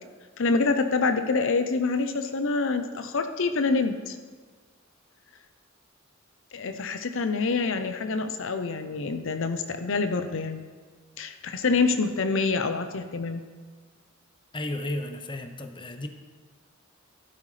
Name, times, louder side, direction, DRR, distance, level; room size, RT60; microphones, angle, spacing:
voice 1, 0.4-4.2 6.5-10.6 11.2-13.4, left 4 dB, 65° left, 8 dB, 0.7 m, -26 dB
voice 2, 14.5-16.1, left 1 dB, 25° left, 6 dB, 0.8 m, -33 dB
12.5 x 11.5 x 3.3 m, 1.4 s
head